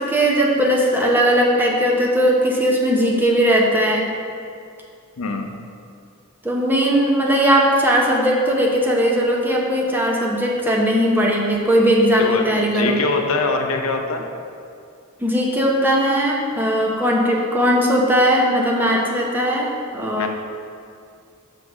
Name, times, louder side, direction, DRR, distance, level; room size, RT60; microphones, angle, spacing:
voice 1, 0.0-4.1 6.4-13.0 15.2-20.3, equal, 10° right, -2 dB, 0.8 m, -18 dB
voice 2, 5.2-5.6 12.2-14.3 20.2-20.3, left 3 dB, 70° left, 4 dB, 0.6 m, -23 dB
5.9 x 3.9 x 6.0 m, 2.4 s
head